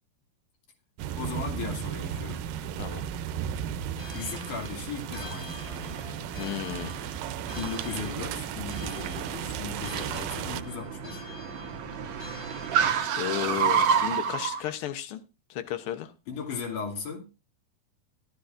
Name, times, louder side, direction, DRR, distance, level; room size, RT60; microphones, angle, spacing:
sound 1, 1.0-10.6, right 9 dB, 90° right, 2.4 m, -35 dB
voice 1, 1.2-2.4 4.1-6.0 7.6-11.2 16.3-17.3, left 5 dB, 70° left, 4.0 m, -37 dB
sound 2, 4.0-13.0, left 2 dB, 40° left, 2.5 m, -47 dB
Car, 5.7-14.6, right 7 dB, 65° right, 2.1 m, -31 dB
voice 2, 6.4-7.0 12.1-12.5 13.1-15.2 15.5-16.1, left 11 dB, 90° left, 1.2 m, -34 dB
14.5 x 12.5 x 2.5 m
omnidirectional pair, 3.8 m